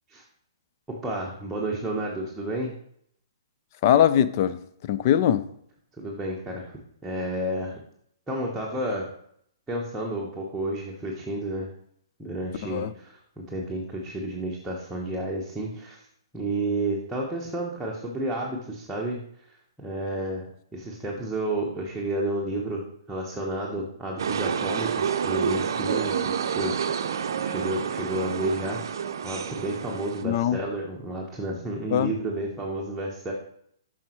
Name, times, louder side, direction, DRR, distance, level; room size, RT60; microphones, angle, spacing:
voice 1, 0.9-2.8 6.0-6.7 7.0-7.8 8.3-9.1 9.7-11.7 12.2-16.0 16.3-19.2 19.8-28.8 29.2-33.3, right 1 dB, 5° right, -4 dB, 1.0 m, -31 dB
voice 2, 3.8-4.6 4.9-5.4 12.6-12.9 30.2-30.6 31.9-32.1, left 10 dB, 45° left, 14 dB, 0.4 m, -21 dB
sound 1, 24.2-30.2, right 7 dB, 65° right, 0.5 m, -28 dB
7.2 x 5.6 x 3.0 m, 0.68 s
hypercardioid pair, 130°, 2 cm